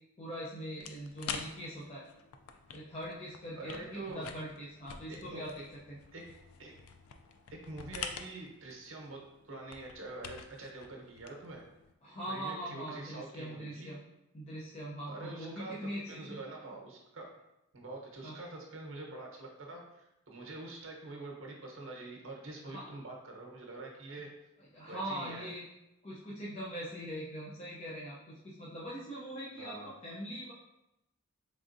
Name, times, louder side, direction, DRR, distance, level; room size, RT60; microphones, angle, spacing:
voice 1, 0.2-2.1 2.7-6.0 12.0-14.0 14.3-16.4 18.2-18.4 22.6-22.8 24.7-25.6 26.0-30.5, equal, 30° left, -6 dB, 0.5 m, -42 dB
sound 1, 0.8-11.9, left 6 dB, 80° left, 0.4 m, -47 dB
voice 2, 3.6-4.3 5.1-5.4 6.1-6.2 6.6-6.7 7.6-11.6 12.3-13.9 15.1-15.7 16.1-17.3 17.7-24.3 24.9-25.5 29.6-29.9, right 2 dB, 60° right, 0 dB, 0.9 m, -45 dB
4.0 x 3.6 x 2.6 m, 0.91 s
head